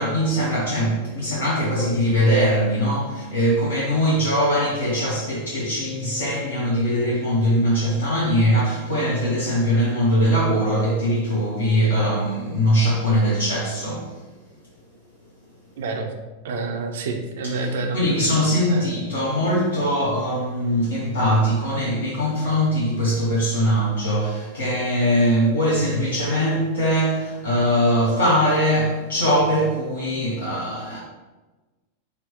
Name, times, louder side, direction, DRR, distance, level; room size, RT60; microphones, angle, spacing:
voice 1, 0.0-14.2 17.4-31.0, equal, 65° left, -6 dB, 0.7 m, -21 dB
voice 2, 15.8-16.1 16.4-18.4 18.7-18.9, right 3 dB, 55° right, 4 dB, 0.4 m, -28 dB
4.2 x 2.0 x 2.9 m, 1.2 s
figure-of-eight pair, 90°, 0 cm